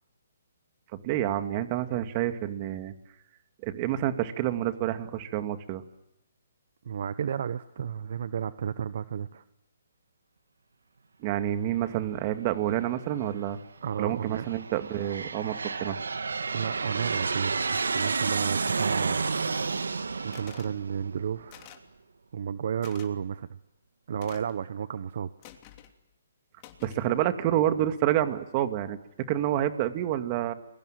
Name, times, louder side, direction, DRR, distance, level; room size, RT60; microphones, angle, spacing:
voice 1, 0.9-2.9 3.6-5.8 11.2-13.6 14.0-16.0 26.8-29.0 29.3-30.5, right 12 dB, 30° right, 8 dB, 2.2 m, -28 dB
voice 2, 6.8-9.4 13.8-14.5 16.5-19.4 20.2-21.7 22.3-23.6 24.1-25.3, right 8 dB, 55° right, 14 dB, 1.0 m, -32 dB
Aircraft, 12.8-13.3 14.0-21.6, right 4 dB, 85° right, 1.8 m, -31 dB
sound 1, 20.3-20.7 21.5-21.9 22.8-23.1 24.2-24.6 25.4-25.9 26.6-27.1, left 11 dB, 30° left, 3.0 m, -49 dB
30.0 x 22.5 x 7.7 m, 0.87 s
hypercardioid pair, 150°, 0 cm